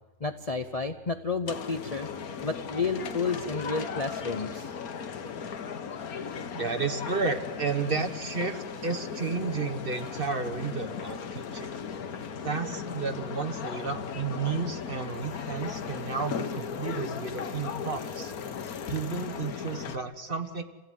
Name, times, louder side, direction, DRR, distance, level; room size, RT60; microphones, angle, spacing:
voice 1, 0.2-2.1 2.4-4.7, left 4 dB, 35° left, 8 dB, 0.7 m, -31 dB
sound 1, 1.5-20.0, left 6 dB, 85° left, 1.6 m, -37 dB
voice 2, 6.3-11.7 12.4-18.3 18.9-20.6, right 4 dB, 40° right, 6 dB, 1.6 m, -32 dB
26.5 x 16.0 x 9.4 m, 1.2 s
omnidirectional pair, 1.5 m